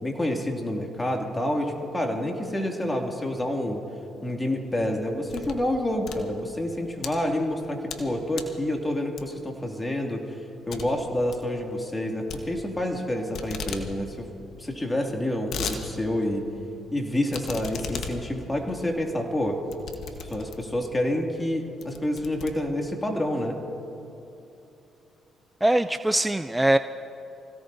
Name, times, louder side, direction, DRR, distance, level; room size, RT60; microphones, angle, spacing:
voice 1, 0.0-3.8 4.2-10.4 10.7-14.3 14.6-16.5 16.9-19.6 20.2-23.6, left 1 dB, 20° left, 2 dB, 2.4 m, -28 dB
sound 1, 5.0-5.7 6.0-7.1 7.6-8.1 8.3-8.6 9.2-9.5 9.9-10.0 10.3-10.4 10.7-10.9 11.1-11.5 12.3-13.0 13.3-13.9 14.2-14.3 14.4-14.5 15.1-15.8 16.2-16.3 17.3-20.8 21.4-21.5 21.8-23.1, left 6 dB, 70° left, 1.3 m, -37 dB
voice 2, 25.6-26.8, right 1 dB, 10° right, 10 dB, 0.4 m, -22 dB
25.0 x 17.0 x 2.7 m, 2.9 s
supercardioid pair, 65°, 0 cm